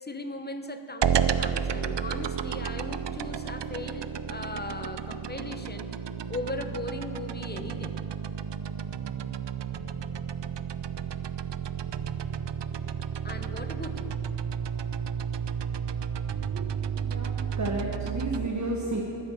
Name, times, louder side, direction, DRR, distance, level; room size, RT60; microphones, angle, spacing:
voice 1, 0.0-5.9 6.3-7.9 13.2-14.2, left 2 dB, 20° left, 8 dB, 0.9 m, -38 dB
sound 1, 1.0-18.5, right 8 dB, 70° right, 0.6 m, -32 dB
voice 2, 17.0-19.0, right 2 dB, 40° right, 0 dB, 1.3 m, -32 dB
13.5 x 9.9 x 7.4 m, 3.0 s
wide cardioid pair, 50°, 45 cm